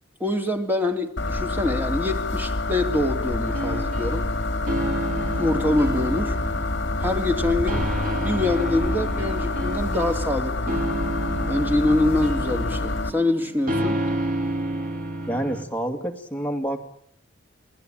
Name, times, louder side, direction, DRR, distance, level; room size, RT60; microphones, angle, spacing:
voice 1, 0.2-4.3 5.4-6.4 7.0-10.8 11.5-14.0, left 2 dB, 10° right, 2.7 m, -25 dB
sound 1, 1.2-13.1, left 2 dB, 65° left, 2.4 m, -27 dB
sound 2, 3.5-15.6, right 1 dB, 45° right, 3.5 m, -31 dB
voice 2, 15.3-16.9, right 1 dB, 10° left, 2.3 m, -28 dB
29.0 x 19.5 x 8.9 m
head